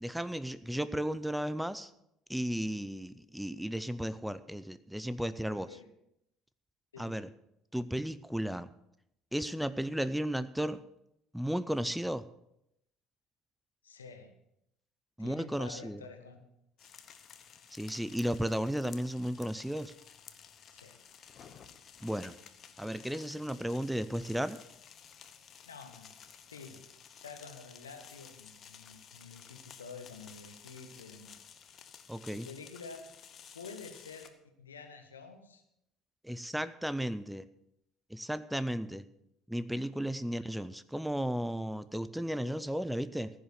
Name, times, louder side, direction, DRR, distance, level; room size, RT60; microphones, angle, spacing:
voice 1, 0.0-1.9 2.3-5.7 7.0-7.3 7.7-8.7 9.3-10.8 11.3-12.2 15.2-16.0 17.7-19.9 22.0-22.3 22.8-24.6 32.1-32.5 36.2-37.5 38.1-39.0 39.5-43.3, equal, 5° right, 14 dB, 0.6 m, -34 dB
voice 2, 5.2-5.9 6.9-7.2 13.8-14.3 15.2-16.4 16.8-16.9 20.7-21.0 25.7-26.2 26.5-26.8 27.2-31.3 32.3-33.1 33.5-34.3 34.6-35.6, left 5 dB, 80° left, 6 dB, 1.4 m, -49 dB
sound 1, 16.8-34.3, left 8 dB, 45° left, 1.1 m, -54 dB
15.0 x 7.2 x 6.6 m, 0.80 s
figure-of-eight pair, 60°, 0 cm